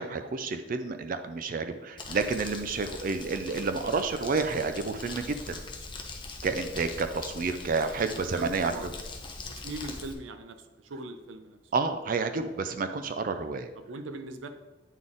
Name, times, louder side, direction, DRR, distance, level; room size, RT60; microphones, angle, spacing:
voice 1, 0.0-5.6 6.4-8.9 11.7-13.7, right 4 dB, 45° right, 9 dB, 0.4 m, -30 dB
Crumpling crinkling, 2.0-10.1, left 3 dB, 25° left, 0.7 m, -42 dB
voice 2, 8.1-8.9 9.5-11.6 13.3-13.4 13.8-14.5, right 2 dB, 80° right, 8 dB, 0.6 m, -40 dB
9.1 x 4.0 x 3.7 m, 1.1 s
head